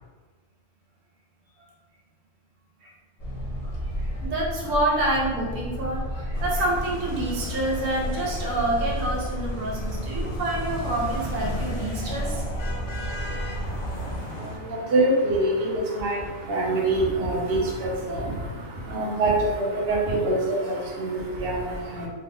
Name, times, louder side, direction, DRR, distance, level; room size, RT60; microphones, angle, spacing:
sound 1, 3.2-14.1, equal, 35° left, 0.6 m, -32 dB
voice 1, 3.6-12.4, right 1 dB, 90° right, -2 dB, 1.3 m, -28 dB
sound 2, 6.3-14.6, left 2 dB, 70° left, 1.0 m, -37 dB
voice 2, 13.1-22.1, right 2 dB, 55° right, -3 dB, 0.8 m, -26 dB
3.1 x 2.1 x 3.5 m, 1.4 s
omnidirectional pair, 1.5 m